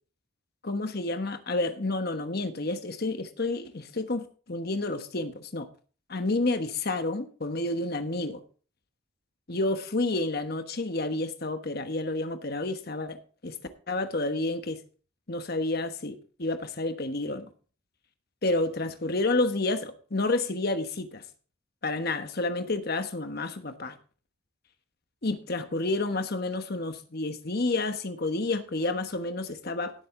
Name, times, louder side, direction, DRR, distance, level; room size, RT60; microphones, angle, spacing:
voice 1, 0.6-5.7 6.1-8.4 9.5-13.5 13.9-14.8 15.3-17.5 18.4-21.2 21.8-23.9 25.2-29.9, left 2 dB, 50° left, 1.2 m, -30 dB
17.0 x 7.7 x 3.8 m
head